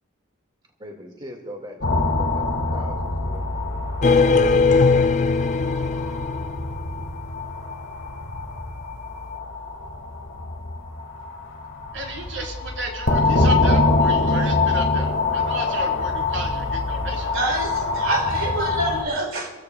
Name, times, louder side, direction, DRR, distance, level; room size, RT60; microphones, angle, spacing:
voice 1, 0.8-3.4, equal, 25° right, 1 dB, 2.0 m, -40 dB
sound 1, 1.8-19.0, left 3 dB, 70° left, 1.6 m, -24 dB
sound 2, 4.0-7.1, left 4 dB, 35° left, 0.4 m, -19 dB
voice 2, 11.9-17.4, right 3 dB, 65° right, 0 dB, 3.7 m, -34 dB
voice 3, 17.3-19.5, right 2 dB, 85° right, 1 dB, 2.5 m, -26 dB
28.5 x 15.0 x 2.3 m, 1.3 s
head